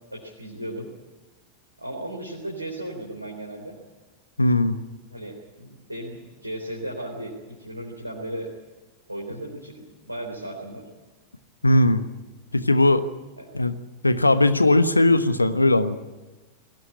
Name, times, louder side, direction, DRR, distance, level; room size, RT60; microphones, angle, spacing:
voice 1, 0.1-0.9 1.8-3.8 5.1-8.5 9.1-10.9 13.4-13.5, right 1 dB, 85° right, -2 dB, 3.8 m, -35 dB
voice 2, 4.4-4.8 11.6-12.0 12.5-13.0 13.5-13.7 14.0-16.0, left 2 dB, 80° left, 12 dB, 1.1 m, -18 dB
21.5 x 17.5 x 9.8 m, 1.2 s
figure-of-eight pair, 90°, 0 cm